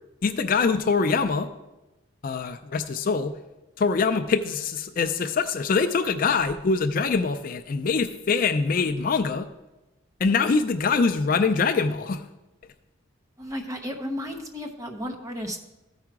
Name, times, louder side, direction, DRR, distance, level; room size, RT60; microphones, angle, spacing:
voice 1, 0.2-1.5 2.2-3.3 3.8-9.5 10.2-12.2, left 4 dB, 45° left, 9 dB, 0.4 m, -24 dB
voice 2, 13.4-15.6, equal, 15° right, 3 dB, 0.9 m, -33 dB
14.0 x 4.8 x 4.6 m, 1.0 s
head